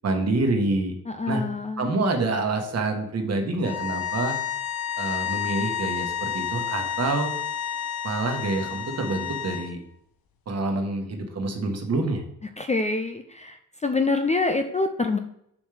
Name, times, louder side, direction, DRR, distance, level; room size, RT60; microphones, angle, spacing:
voice 1, 0.0-0.9 1.3-1.4 1.8-4.4 5.0-7.3 8.0-9.8 10.5-12.2, right 2 dB, 45° right, 4 dB, 1.3 m, -27 dB
voice 2, 1.1-1.9 12.6-15.2, left 3 dB, 20° left, 6 dB, 0.4 m, -26 dB
sound 1, 3.6-9.7, left 8 dB, 85° left, 0.9 m, -30 dB
7.2 x 6.2 x 3.4 m, 0.72 s
wide cardioid pair, 160°, 35 cm